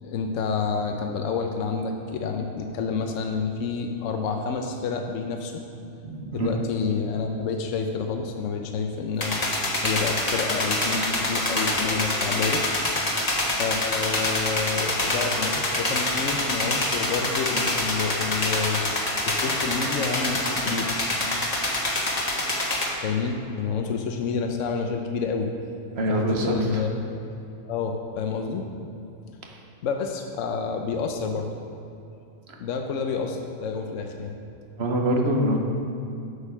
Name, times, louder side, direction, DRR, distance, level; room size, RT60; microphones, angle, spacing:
voice 1, 0.0-5.6 6.3-9.5 9.8-12.8 13.6-18.8 19.3-20.9 23.0-25.5 26.1-26.9 27.3-27.4 27.6-28.7 29.8-31.5 32.6-34.3, left 5 dB, 75° left, 4 dB, 1.0 m, -29 dB
voice 2, 6.0-6.5 25.9-26.8 29.4-29.5 32.5-32.6 34.8-35.6, right 1 dB, 55° right, 1 dB, 1.2 m, -25 dB
sound 1, 9.2-22.9, left 1 dB, 30° left, 1.3 m, -26 dB
8.2 x 6.7 x 5.6 m, 2.6 s
omnidirectional pair, 1.3 m